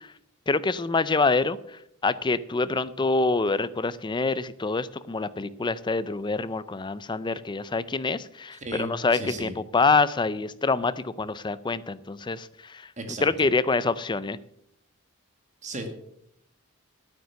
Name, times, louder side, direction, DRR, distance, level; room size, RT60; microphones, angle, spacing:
voice 1, 0.5-1.6 2.0-12.9 13.2-14.4, left 3 dB, 20° left, 16 dB, 0.5 m, -26 dB
voice 2, 8.6-9.5 13.0-13.3 15.6-16.0, right 1 dB, 35° right, 5 dB, 1.7 m, -35 dB
9.3 x 9.1 x 6.9 m, 0.75 s
head